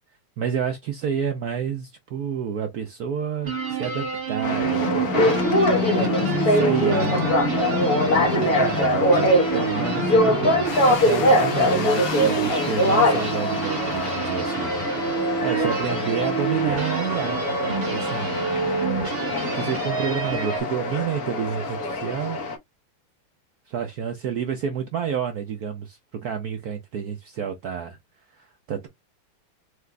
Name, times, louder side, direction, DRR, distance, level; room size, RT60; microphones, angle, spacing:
voice 1, 0.4-5.7 6.0-7.4 8.2-18.4 19.5-22.4 23.7-28.0 28.3-28.9, right 7 dB, 80° right, 0.8 m, -30 dB
sound 1, 3.4-20.6, right 6 dB, 35° right, 1.2 m, -29 dB
sound 2, 4.4-22.6, left 1 dB, 55° left, 1.2 m, -23 dB
sound 3, 10.7-14.7 15.1-15.2 15.5-15.8 16.2-16.3 17.0-17.1, left 8 dB, 85° left, 1.8 m, -36 dB
4.8 x 2.5 x 3.2 m
omnidirectional pair, 2.4 m